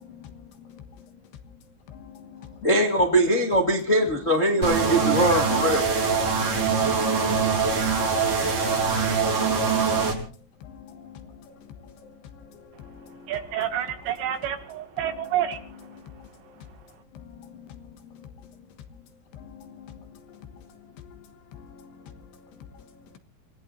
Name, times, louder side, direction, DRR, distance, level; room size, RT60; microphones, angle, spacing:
voice 1, 0.1-0.4 0.7-0.8 1.9-2.5 6.2-7.5 8.6-9.0 9.4-9.5 10.6-13.3 16.2-16.3 17.3-17.7 18.1-18.3 19.3-20.0 21.0-21.1 21.5-22.1, left 8 dB, 70° left, 3.3 m, -46 dB
voice 2, 2.6-5.8, right 1 dB, 35° left, 1.2 m, -21 dB
sound 1, 4.6-10.1, right 5 dB, 45° right, 5.2 m, -23 dB
voice 3, 13.3-16.3 16.7-16.8, right 10 dB, 75° right, 4.3 m, -30 dB
27.5 x 19.0 x 2.7 m
omnidirectional pair, 5.1 m